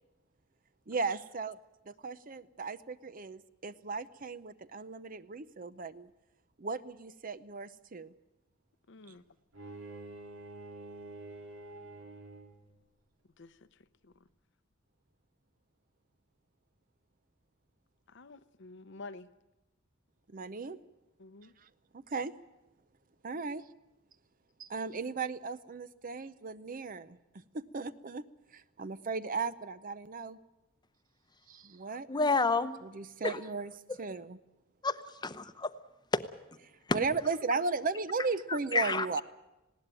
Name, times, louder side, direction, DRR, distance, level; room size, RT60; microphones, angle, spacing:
voice 1, 0.9-1.6 1.8-6.1 6.6-8.1 20.3-20.8 21.6-22.3 23.2-23.6 24.6-28.3 28.5-30.4 31.5-32.1 32.8-33.7 34.0-34.4 36.7-39.2, right 4 dB, 40° right, 0.7 m, -36 dB
voice 2, 8.9-9.2 13.4-13.5 14.0-14.1 18.1-19.3 21.2-21.5, left 3 dB, 60° left, 0.8 m, -49 dB
Bowed string instrument, 9.5-12.8, right 2 dB, 80° right, 2.2 m, -47 dB
voice 3, 32.1-32.8 33.2-33.4 34.8-35.7 36.1-36.2 38.7-39.1, left 3 dB, 20° left, 0.8 m, -29 dB
19.5 x 17.5 x 9.0 m
head